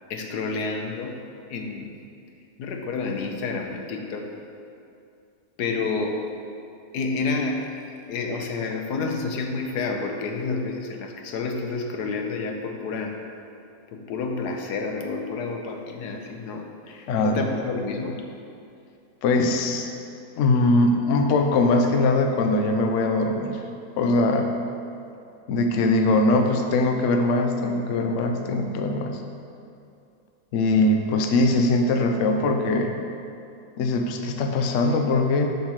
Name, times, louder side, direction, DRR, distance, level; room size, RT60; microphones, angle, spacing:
voice 1, 0.1-1.2 1.5-2.0 2.6-4.3 5.6-6.3 6.9-13.2 13.9-18.2, left 4 dB, 85° left, 3 dB, 1.4 m, -29 dB
voice 2, 17.1-17.4 19.2-19.9 20.4-23.6 24.0-24.5 25.5-29.2 30.5-33.0 33.8-35.5, left 2 dB, 60° left, 4 dB, 0.9 m, -21 dB
7.3 x 5.8 x 6.3 m, 2.5 s
omnidirectional pair, 1.7 m